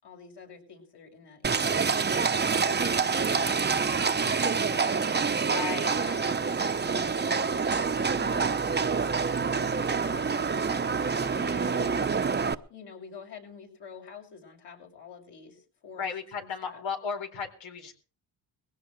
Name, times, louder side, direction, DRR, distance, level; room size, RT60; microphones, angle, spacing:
voice 1, 0.0-3.0 3.4-5.0 5.6-8.8 10.0-10.6 11.4-16.1 16.4-16.8, left 5 dB, 65° left, 1 dB, 7.0 m, -48 dB
Livestock farm animals working animals, 1.4-12.5, right 5 dB, 25° right, 0.9 m, -27 dB
voice 2, 5.4-6.4 15.9-18.0, left 6 dB, 85° left, 4 dB, 4.4 m, -37 dB
21.0 x 16.5 x 3.4 m, 0.37 s
cardioid pair, 95°, 44 cm